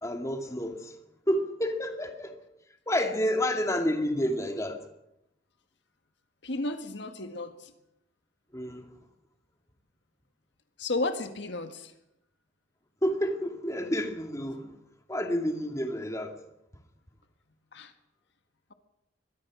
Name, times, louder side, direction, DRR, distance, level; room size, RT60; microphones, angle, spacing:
voice 1, 0.0-1.0 1.3-2.4 2.9-4.8 8.5-8.9 13.0-14.8 15.1-16.4, equal, 15° left, 2.2 m, -29 dB
voice 2, 6.4-7.7 10.8-11.9 17.7-17.9, left 2 dB, 60° left, 1.7 m, -33 dB
24.0 x 21.5 x 6.2 m
head